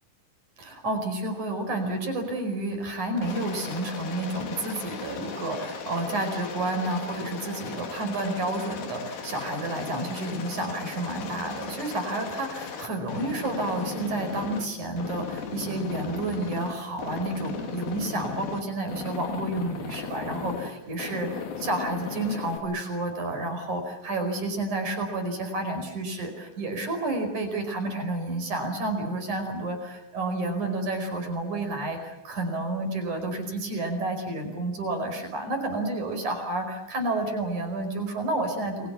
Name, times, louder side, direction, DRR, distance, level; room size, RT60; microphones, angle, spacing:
voice 1, 0.6-21.3 21.6-38.9, right 2 dB, 55° right, 5 dB, 6.4 m, -30 dB
Aircraft, 3.2-14.6 15.0-16.7 17.0-18.6 18.9-20.7 21.0-22.6, left 6 dB, 80° left, 4.4 m, -37 dB
30.0 x 22.5 x 7.2 m, 1.0 s
omnidirectional pair, 4.2 m